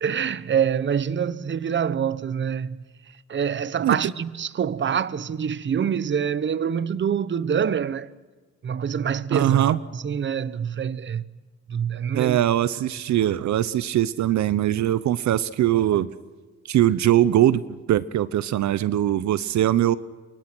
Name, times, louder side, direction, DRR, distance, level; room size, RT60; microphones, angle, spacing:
voice 1, 0.0-2.8 3.3-8.1 8.6-11.2 11.7-12.4, right 7 dB, 40° right, 1.0 m, -25 dB
voice 2, 9.3-9.8 12.1-16.1 16.7-20.0, right 12 dB, 70° right, 0.8 m, -21 dB
28.5 x 24.0 x 6.2 m
cardioid pair, 90°, 30 cm